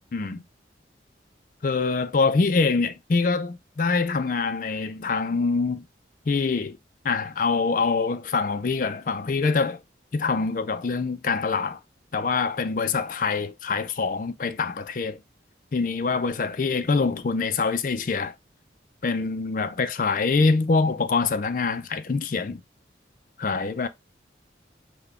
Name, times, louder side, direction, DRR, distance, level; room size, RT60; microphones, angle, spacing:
voice 1, 0.1-0.4 1.6-5.9 6.3-6.8 7.0-9.8 10.1-11.8 12.1-15.2 15.7-18.3 19.0-22.6 23.4-23.9, left 4 dB, 45° left, 0.4 m, -25 dB
5.7 x 2.2 x 3.5 m
head